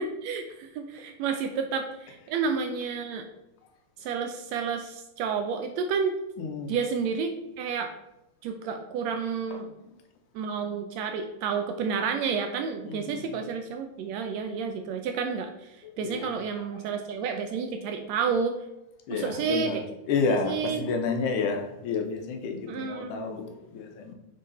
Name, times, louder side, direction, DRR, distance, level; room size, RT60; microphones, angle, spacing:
voice 1, 0.0-3.2 4.0-6.2 6.7-7.9 8.4-9.7 10.3-18.6 19.1-19.8 20.3-20.9 22.7-23.4, right 5 dB, 80° right, 5 dB, 1.6 m, -30 dB
voice 2, 6.4-6.9 9.5-9.6 12.8-13.5 15.8-16.9 19.1-19.8 20.1-24.1, left 5 dB, 85° left, 4 dB, 2.3 m, -31 dB
6.4 x 3.9 x 4.1 m, 0.91 s
omnidirectional pair, 3.5 m